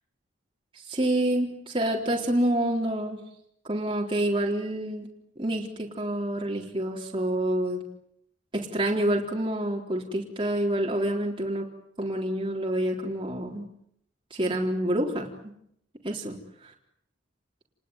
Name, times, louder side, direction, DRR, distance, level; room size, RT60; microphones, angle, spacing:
voice 1, 0.9-3.2 3.6-5.1 5.4-7.8 8.5-11.7 12.0-13.7 14.3-15.5 16.0-16.3, right 1 dB, 25° right, -1 dB, 3.9 m, -27 dB
29.5 x 20.5 x 9.8 m, 0.74 s
head